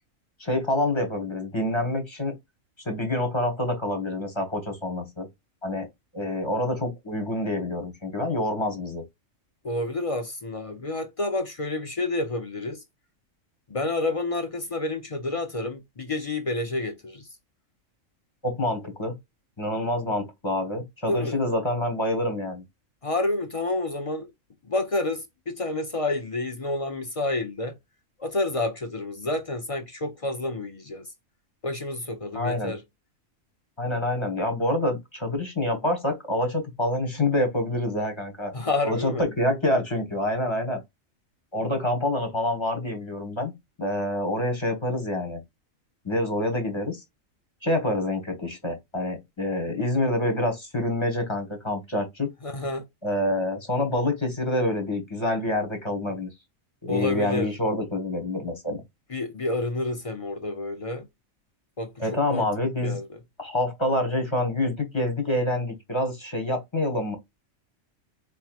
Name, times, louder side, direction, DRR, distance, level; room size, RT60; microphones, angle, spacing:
voice 1, 0.4-2.3 2.8-5.3 5.6-5.9 6.1-9.0 18.4-19.1 19.6-22.6 32.3-32.7 33.8-38.5 38.8-40.8 41.5-45.4 46.0-47.0 47.6-52.3 53.0-56.3 56.8-58.8 62.0-63.0 63.4-67.2, left 1 dB, 20° left, 1.1 m, -27 dB
voice 2, 9.6-12.8 13.7-17.3 21.1-21.4 23.0-24.3 24.6-27.7 28.2-31.1 31.6-32.8 38.5-39.3 52.4-52.8 56.9-57.5 59.1-61.1 61.8-62.5 62.8-63.1, left 2 dB, 45° left, 0.4 m, -29 dB
4.4 x 3.0 x 2.3 m
omnidirectional pair, 1.4 m